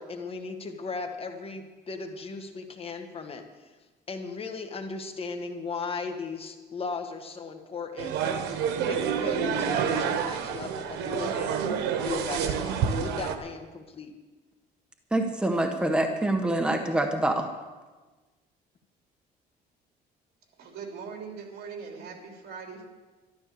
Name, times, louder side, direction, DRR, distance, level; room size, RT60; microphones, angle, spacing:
voice 1, 0.0-3.7 4.1-8.2 8.8-11.6 12.0-14.1, left 4 dB, 35° left, 5 dB, 1.7 m, -37 dB
sound 1, 8.0-13.3, right 7 dB, 90° right, 1.3 m, -28 dB
voice 2, 15.1-17.5, right 1 dB, 5° right, 4 dB, 1.3 m, -25 dB
voice 3, 20.6-22.9, right 5 dB, 65° right, 2 dB, 3.3 m, -41 dB
13.0 x 12.5 x 6.8 m, 1.2 s
cardioid pair, 110°, 17 cm